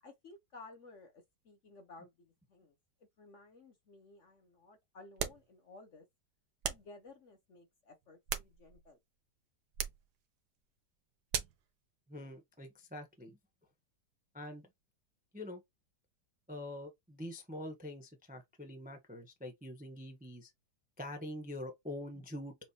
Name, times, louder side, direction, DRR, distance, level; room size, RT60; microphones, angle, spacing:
voice 1, 0.0-2.7 3.2-6.1 6.7-9.0, left 3 dB, 50° left, 1.0 m, -56 dB
sound 1, 5.2-5.5 6.6-6.9 8.0-8.9 9.7-10.1 11.3-11.7, right 9 dB, 70° right, 1.3 m, -38 dB
voice 2, 12.1-13.4 14.3-14.7 15.3-15.6 16.5-20.5 21.0-22.7, left 1 dB, 10° right, 0.6 m, -45 dB
6.2 x 2.4 x 2.8 m
omnidirectional pair, 1.9 m